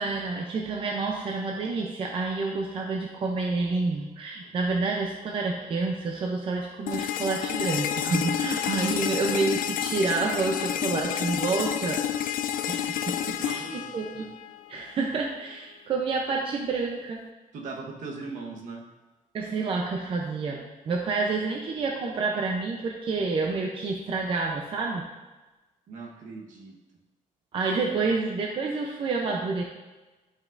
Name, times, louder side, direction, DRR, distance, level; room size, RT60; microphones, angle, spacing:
voice 1, 0.0-12.4 12.7-13.7 13.9-14.3 14.7-17.2 19.3-25.1 27.5-29.6, right 4 dB, 40° right, 0 dB, 0.6 m, -29 dB
sound 1, 6.9-14.8, left 10 dB, 85° left, 0.4 m, -29 dB
voice 2, 8.9-9.4 13.4-14.3 17.5-18.9 25.9-26.8 28.0-28.1, right 3 dB, 65° right, 0 dB, 1.2 m, -40 dB
12.0 x 5.2 x 2.6 m, 1.2 s
cardioid pair, 180°, 14 cm